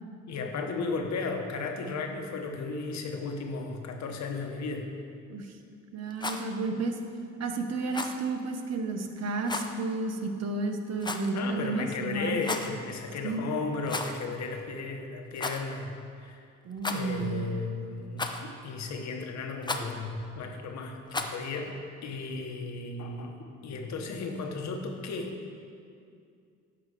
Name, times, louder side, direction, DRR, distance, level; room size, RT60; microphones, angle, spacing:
voice 1, 0.3-4.9 11.3-15.9 16.2-16.4 16.9-21.7 22.0-23.4 23.6-25.3, left 4 dB, 65° left, 3 dB, 1.1 m, -35 dB
voice 2, 5.9-7.0 7.4-12.4 13.2-13.4 16.6-17.5, right 3 dB, 55° right, 5 dB, 0.9 m, -32 dB
Rattle, 6.1-6.5 7.9-8.2 9.4-9.7 11.0-11.4 12.3-12.7 13.8-14.3 14.5-14.6 15.3-15.6 16.8-17.3 18.2-18.6 19.6-19.9 21.1-21.4, left 2 dB, 15° left, 0.6 m, -34 dB
9.8 x 5.8 x 5.0 m, 2.3 s
cardioid pair, 90°, 30 cm